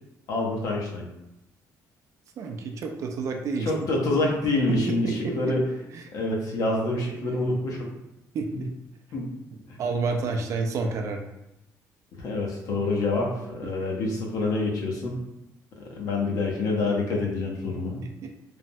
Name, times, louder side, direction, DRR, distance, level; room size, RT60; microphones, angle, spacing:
voice 1, 0.3-1.1 3.6-5.6 6.1-7.9 8.5-8.6 9.1-9.3 9.7-9.8 12.2-15.2 15.9-18.0, left 2 dB, 65° left, -1 dB, 0.7 m, -27 dB
voice 2, 2.4-3.7 4.7-5.6 5.9-6.0 7.2-7.4 8.3-8.7 9.8-11.2, right 4 dB, 50° right, 4 dB, 0.3 m, -30 dB
3.2 x 2.0 x 2.6 m, 0.88 s
cardioid pair, 140°, 7 cm